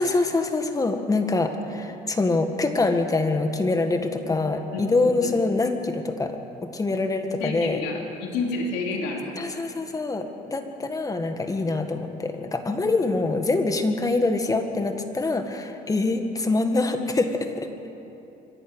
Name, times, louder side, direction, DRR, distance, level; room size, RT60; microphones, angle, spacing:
voice 1, 0.0-7.8 9.4-17.9, left 3 dB, 20° left, 6 dB, 1.8 m, -25 dB
voice 2, 4.7-5.4 7.4-9.6 13.0-13.1, left 3 dB, 90° left, 0 dB, 3.0 m, -30 dB
25.5 x 11.5 x 9.7 m, 2.9 s
cardioid pair, 110°, 17 cm